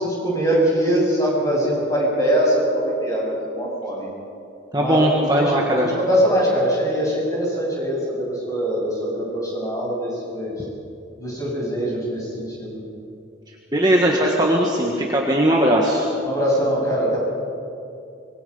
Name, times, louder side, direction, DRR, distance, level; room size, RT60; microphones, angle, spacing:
voice 1, 0.0-4.1 4.8-5.1 5.3-5.5 5.8-10.5 11.2-12.8 16.3-17.2, equal, 15° left, -4 dB, 7.4 m, -22 dB
voice 2, 4.7-5.9 13.7-16.0, right 1 dB, 20° right, -2 dB, 1.7 m, -19 dB
25.0 x 21.5 x 5.6 m, 2.6 s
head